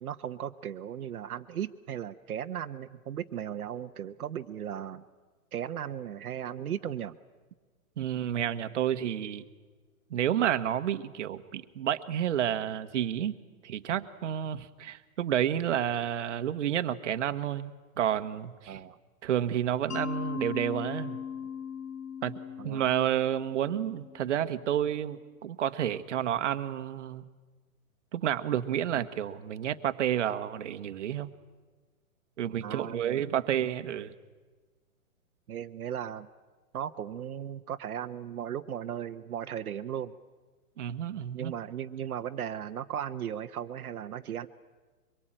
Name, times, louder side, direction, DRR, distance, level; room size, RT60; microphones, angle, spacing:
voice 1, 0.0-5.0 5.5-7.2 18.7-19.0 22.6-22.8 32.6-33.2 35.5-36.3 36.7-40.1 41.3-44.5, right 9 dB, 75° right, 7 dB, 1.1 m, -36 dB
voice 2, 8.0-9.4 10.1-13.3 13.6-18.8 19.2-21.2 22.2-22.3 22.6-27.2 28.1-31.3 32.4-34.1 40.8-41.5, right 10 dB, 50° right, 10 dB, 1.3 m, -30 dB
Mallet percussion, 19.9-24.7, left 7 dB, 90° left, 2.1 m, -39 dB
23.5 x 23.0 x 8.9 m, 1.3 s
hypercardioid pair, 165°, 44 cm